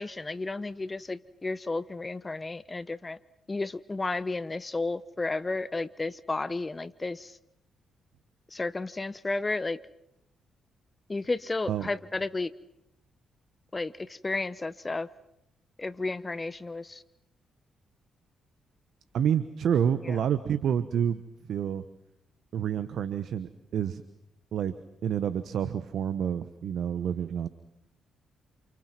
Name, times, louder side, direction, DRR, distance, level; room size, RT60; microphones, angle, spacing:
voice 1, 0.0-3.2 3.5-7.3 8.5-9.8 11.1-12.5 13.7-15.1 15.8-17.0 20.0-20.2, left 3 dB, 25° left, 16 dB, 1.1 m, -32 dB
voice 2, 19.1-21.2 21.5-21.8 22.5-24.0 24.5-24.7 25.0-27.5, right 8 dB, 65° right, 13 dB, 1.1 m, -28 dB
28.5 x 28.5 x 6.1 m, 0.82 s
hypercardioid pair, 45°, 0 cm